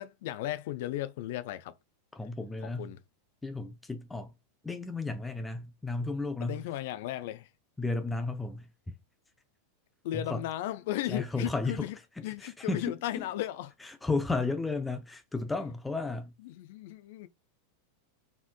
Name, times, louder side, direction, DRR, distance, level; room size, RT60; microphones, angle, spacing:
voice 1, 0.0-1.7 2.6-3.0 6.4-7.5 10.0-12.0 12.2-13.7 16.4-17.3, left 14 dB, 55° left, 0.4 m, -35 dB
voice 2, 2.1-2.9 3.4-4.3 4.6-6.6 7.8-8.7 10.1-10.4 11.1-11.9 12.2-13.2 13.8-16.3, left 3 dB, 10° left, 0.6 m, -33 dB
4.3 x 3.5 x 2.2 m
figure-of-eight pair, 90°, 0 cm